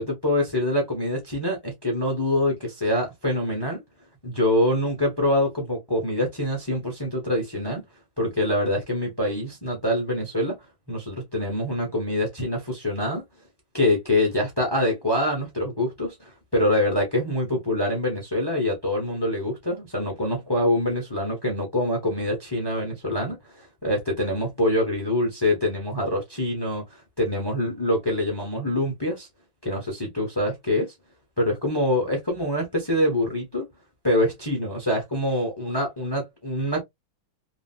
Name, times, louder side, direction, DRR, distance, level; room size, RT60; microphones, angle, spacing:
voice 1, 0.0-3.8 4.2-7.8 8.2-10.6 10.9-13.2 13.7-26.8 27.2-29.3 29.6-30.9 31.4-33.7 34.0-36.8, left 1 dB, 20° left, 0.6 m, -25 dB
3.0 x 2.7 x 2.4 m
omnidirectional pair, 2.1 m